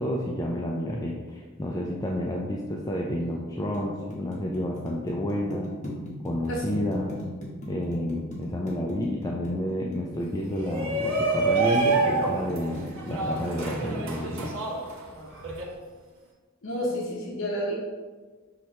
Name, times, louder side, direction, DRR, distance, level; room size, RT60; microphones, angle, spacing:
voice 1, 0.0-5.7 6.2-7.1 7.7-12.7 13.0-14.5, left 1 dB, 15° left, -2 dB, 0.3 m, -30 dB
sound 1, 3.3-11.5 11.9-13.6, equal, 35° left, 1.1 m, -39 dB
Shout, 10.5-15.6, right 3 dB, 70° right, 1.1 m, -27 dB
voice 2, 16.6-17.8, equal, 65° left, -2 dB, 0.7 m, -30 dB
5.8 x 2.8 x 3.2 m, 1.4 s
head